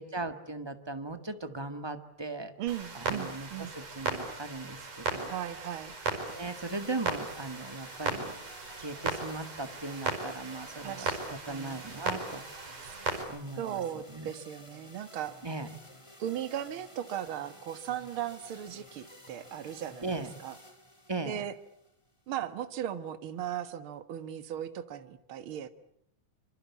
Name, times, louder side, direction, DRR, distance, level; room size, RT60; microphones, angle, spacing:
voice 1, 0.0-2.5 2.9-5.3 6.3-8.3 8.8-12.7 13.3-13.8 14.1-14.3 15.4-15.7 20.0-20.3 21.1-21.4, right 3 dB, 15° right, 8 dB, 1.0 m, -38 dB
voice 2, 2.6-3.7 5.3-6.0 10.8-11.2 11.5-11.8 13.6-15.4 16.2-20.1 20.4-20.6 21.2-21.5 22.3-25.7, right 10 dB, 50° right, 10 dB, 2.1 m, -37 dB
Clock, 2.7-13.2, right 4 dB, 80° right, 6.8 m, -37 dB
sound 1, 6.3-22.3, left 1 dB, 10° left, 3.7 m, -53 dB
26.5 x 26.0 x 8.5 m, 0.71 s
omnidirectional pair, 3.5 m